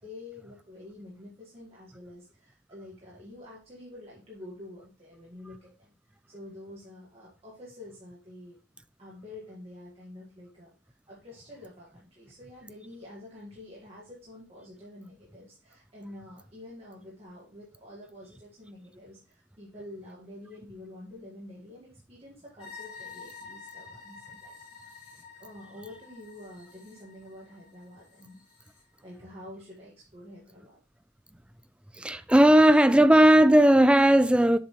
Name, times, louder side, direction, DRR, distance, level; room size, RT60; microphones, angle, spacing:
voice 1, 0.0-8.6 9.0-28.4 29.0-30.8, left 1 dB, 35° right, 1.7 m, -48 dB
sound 1, 22.6-28.8, left 5 dB, 30° left, 3.3 m, -49 dB
voice 2, 32.0-34.6, right 1 dB, 5° right, 0.4 m, -17 dB
7.2 x 5.4 x 3.1 m
head